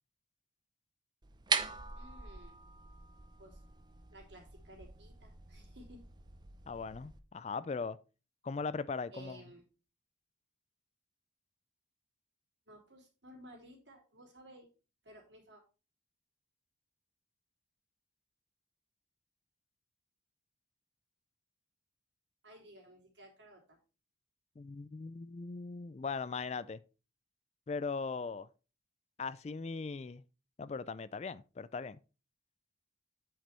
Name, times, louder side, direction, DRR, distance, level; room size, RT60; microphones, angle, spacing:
sound 1, 1.2-7.2, right 5 dB, 20° right, 0.6 m, -41 dB
voice 1, 1.9-2.6 3.4-3.6 4.1-6.0 9.1-9.6 12.7-14.7 15.0-15.6 22.4-23.8, right 1 dB, 70° right, 3.4 m, -55 dB
voice 2, 6.7-8.0 8.4-9.4 24.6-26.8 27.7-28.5 29.2-30.2 30.6-32.0, left 4 dB, 35° left, 0.3 m, -39 dB
8.6 x 5.4 x 4.3 m
head